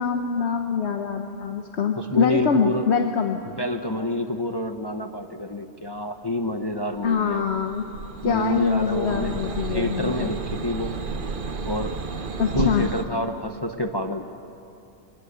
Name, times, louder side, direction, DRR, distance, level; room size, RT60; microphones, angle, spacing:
voice 1, 0.0-3.4 7.0-7.9 8.2-10.3 12.4-12.9, left 6 dB, 55° left, 5 dB, 1.1 m, -24 dB
voice 2, 2.0-2.9 3.5-7.5 8.2-9.3 9.7-11.0 11.6-11.9 12.5-14.3, left 1 dB, 25° left, 5 dB, 0.6 m, -28 dB
sound 1, 7.0-13.0, right 4 dB, 45° right, 1.0 m, -32 dB
23.0 x 19.5 x 6.6 m, 2.7 s
omnidirectional pair, 1.4 m